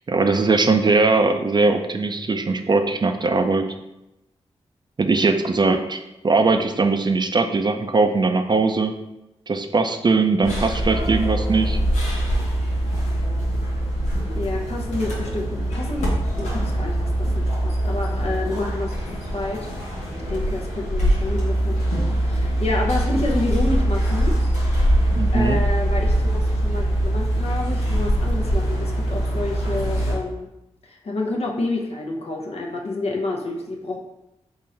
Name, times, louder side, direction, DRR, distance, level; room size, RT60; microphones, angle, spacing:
voice 1, 0.1-3.7 5.0-6.0 6.2-8.9 9.5-11.8 25.1-25.6, right 3 dB, 40° right, 6 dB, 0.5 m, -20 dB
sound 1, 10.4-30.2, right 1 dB, 90° left, 1.1 m, -23 dB
voice 2, 14.3-18.9 19.3-19.7 20.3-21.8 22.1-24.4 25.0-30.5 30.8-34.0, left 2 dB, 60° left, 0 dB, 0.8 m, -29 dB
3.8 x 2.5 x 4.3 m, 0.93 s
supercardioid pair, 40°, 12 cm